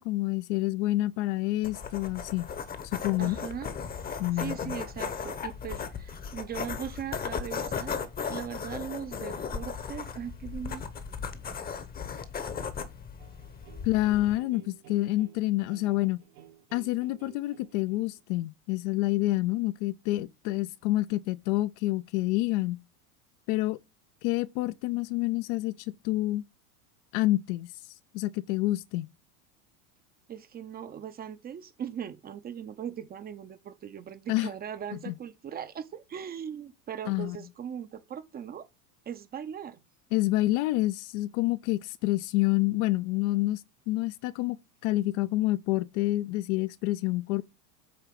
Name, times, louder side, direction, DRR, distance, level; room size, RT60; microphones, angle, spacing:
voice 1, 0.0-2.5 2.9-3.4 4.2-4.7 13.8-16.2 16.7-22.8 23.5-23.8 24.2-26.4 27.1-27.7 28.1-29.1 34.3-34.5 35.1-35.2 37.1-37.4 40.1-43.6 43.9-44.6 44.8-47.4, left 18 dB, 55° left, 0.5 m, -28 dB
sound 1, 1.6-14.4, left 6 dB, 20° left, 0.8 m, -37 dB
voice 2, 3.2-3.7 4.3-8.0 8.3-11.6 30.3-38.7 39.1-39.8, right 8 dB, 20° right, 0.5 m, -39 dB
sound 2, 13.2-18.2, right 11 dB, 85° right, 1.9 m, -54 dB
8.3 x 2.9 x 5.8 m
supercardioid pair, 120°, 45 cm